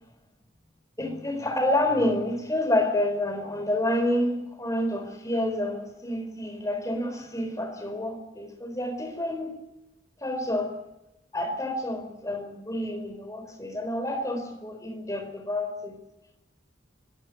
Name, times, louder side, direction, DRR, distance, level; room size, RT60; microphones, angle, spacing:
voice 1, 1.0-9.5 10.2-10.8 11.3-16.0, left 1 dB, 20° left, 6 dB, 4.4 m, -28 dB
25.5 x 14.5 x 9.2 m, 0.91 s
head